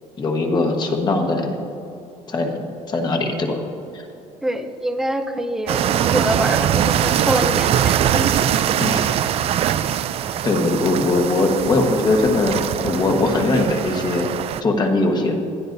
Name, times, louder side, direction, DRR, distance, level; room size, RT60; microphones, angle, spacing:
voice 1, 0.2-1.6 2.3-2.6 2.9-3.6 3.9-4.1 8.8-9.1 10.4-14.3 14.6-15.4, left 2 dB, 30° left, 3 dB, 1.3 m, -20 dB
voice 2, 4.4-8.3, right 1 dB, 5° right, 7 dB, 0.6 m, -25 dB
sound 1, 5.7-14.6, right 10 dB, 45° right, 0.4 m, -22 dB
20.0 x 12.0 x 2.6 m, 2.6 s
cardioid pair, 155°, 14 cm